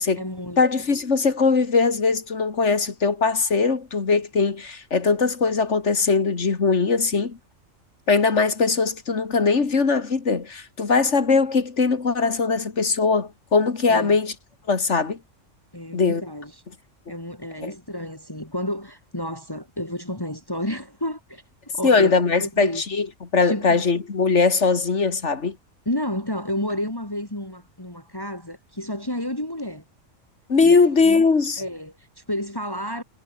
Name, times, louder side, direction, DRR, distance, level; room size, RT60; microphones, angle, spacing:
voice 1, 0.0-0.6 13.9-14.2 15.7-16.6 17.1-21.4 21.7-22.8 23.4-23.9 25.9-29.8 30.6-31.3 31.6-33.0, left 1 dB, 15° left, 3.5 m, -31 dB
voice 2, 0.6-7.4 8.1-14.3 14.7-15.2 15.9-16.2 17.6-17.7 21.8-23.1 23.3-25.6 30.5-31.6, left 4 dB, 65° left, 2.3 m, -20 dB
omnidirectional pair, 1.3 m